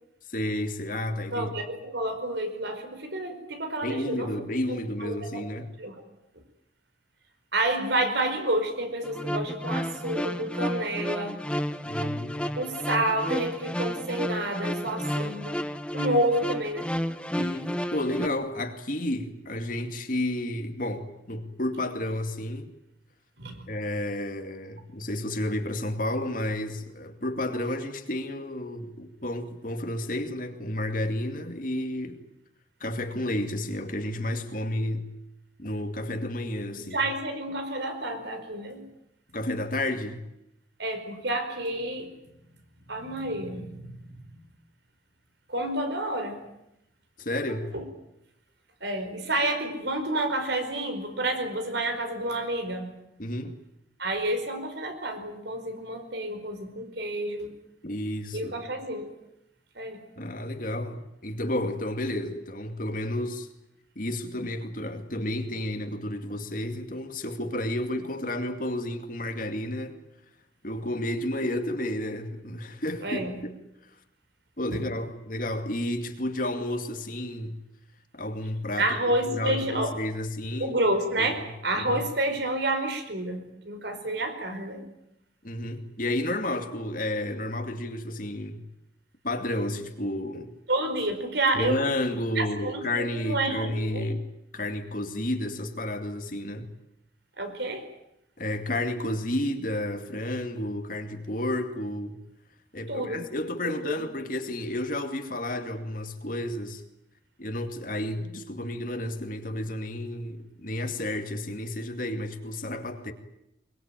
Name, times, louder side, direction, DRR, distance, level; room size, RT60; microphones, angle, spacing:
voice 1, 0.3-1.5 3.8-5.7 11.8-12.5 17.3-22.7 23.7-32.2 32.8-35.1 35.6-37.0 39.3-40.2 47.2-47.7 53.2-53.6 57.8-58.5 60.2-63.5 64.0-70.0 70.6-73.5 74.6-77.6 78.1-80.8 81.2-81.5 81.9-82.0 85.4-88.6 89.2-90.5 91.5-94.3 94.5-96.7 98.4-102.2 102.7-106.8 107.4-113.1, left 1 dB, 45° left, 2.4 m, -31 dB
voice 2, 1.3-4.3 4.7-5.5 5.8-5.9 7.5-11.4 12.0-12.2 12.5-15.6 15.9-17.0 23.4-23.6 36.9-38.8 40.8-42.1 42.9-44.1 45.5-46.4 47.7-47.8 48.8-53.0 54.0-57.5 58.3-59.1 59.7-60.0 73.0-73.4 74.7-74.8 78.8-80.0 80.6-84.9 90.7-91.9 92.4-94.1 97.4-97.9 102.9-103.3 103.6-104.1, right 1 dB, 65° right, 4.8 m, -29 dB
sound 1, 9.0-18.3, equal, 5° left, 0.8 m, -31 dB
23.0 x 22.5 x 9.1 m
head